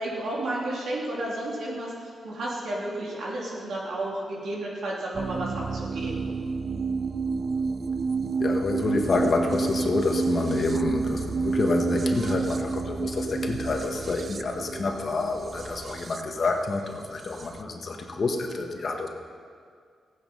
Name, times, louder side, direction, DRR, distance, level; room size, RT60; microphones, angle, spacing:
voice 1, 0.0-6.3, right 1 dB, 75° right, -4 dB, 3.3 m, -32 dB
sound 1, 5.1-17.6, right 4 dB, 45° right, 0.5 m, -30 dB
voice 2, 8.4-19.1, left 3 dB, 50° left, 3 dB, 1.5 m, -28 dB
15.5 x 9.3 x 5.6 m, 2.1 s
cardioid pair, 85°, 0 cm